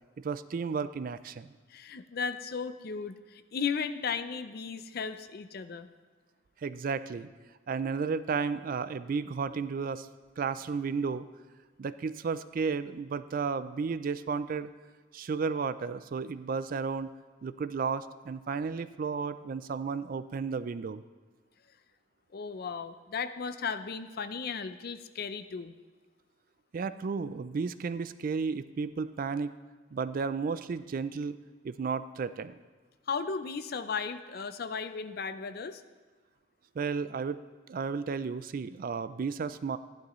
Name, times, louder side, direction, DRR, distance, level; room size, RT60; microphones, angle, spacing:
voice 1, 0.2-1.5 6.6-7.3 7.7-10.1 10.4-11.3 11.8-14.7 15.1-17.1 17.4-21.0 26.7-29.5 29.9-31.4 31.6-32.6 36.8-37.4 37.7-39.8, right 5 dB, 45° right, 14 dB, 0.3 m, -33 dB
voice 2, 1.7-5.9 22.3-25.7 33.1-35.8, left 5 dB, 50° left, 11 dB, 0.5 m, -35 dB
13.5 x 11.5 x 3.1 m, 1.3 s
head